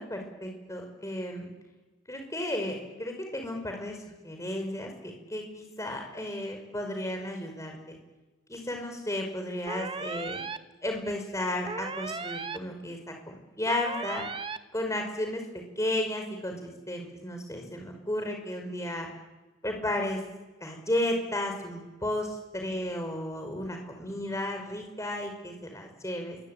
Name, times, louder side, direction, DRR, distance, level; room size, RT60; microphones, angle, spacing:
voice 1, 0.0-1.5 2.1-4.0 4.2-8.0 8.5-10.4 10.8-14.3 14.7-15.4 15.8-19.1 19.6-20.2 20.6-26.4, left 1 dB, 15° left, 3 dB, 5.4 m, -33 dB
jsyd klaxon, 9.7-10.6 11.7-12.6 13.7-14.6, right 4 dB, 25° right, 1.0 m, -36 dB
28.0 x 23.5 x 9.2 m, 1.2 s
head